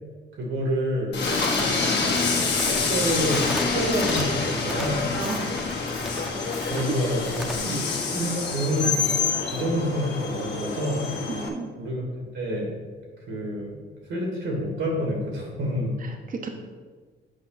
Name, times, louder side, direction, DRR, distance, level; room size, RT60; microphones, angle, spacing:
voice 1, 0.4-1.2 1.7-2.3 2.7-5.1 6.6-7.8 8.1-8.9 9.5-11.1 11.8-12.7 13.3-13.8 14.1-16.0, equal, 70° right, 0 dB, 2.3 m, -28 dB
Train, 1.1-11.5, left 4 dB, 60° left, 1.5 m, -27 dB
Crackle, 1.2-7.6, equal, ahead, 0.9 m, -36 dB
voice 2, 5.2-5.5 6.8-6.9 7.5-7.8 11.3-11.7 16.0-16.5, right 4 dB, 45° right, 3 dB, 1.0 m, -34 dB
7.8 x 5.4 x 4.1 m, 1.5 s
cardioid pair, 90°, 20 cm